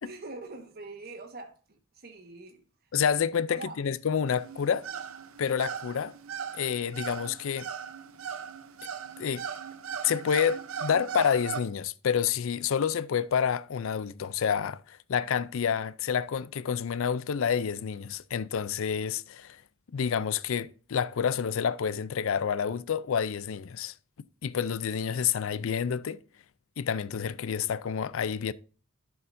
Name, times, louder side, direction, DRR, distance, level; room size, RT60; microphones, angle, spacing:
voice 1, 0.0-2.6 3.5-3.8, right 3 dB, 45° right, 1.4 m, -43 dB
voice 2, 2.9-4.9 5.4-6.1 6.5-7.7 9.2-9.4 10.0-19.6 19.9-23.9 24.4-26.2 26.8-28.5, left 7 dB, 65° left, 0.4 m, -29 dB
sound 1, 4.3-11.6, right 7 dB, 70° right, 0.7 m, -38 dB
12.0 x 7.0 x 2.6 m
head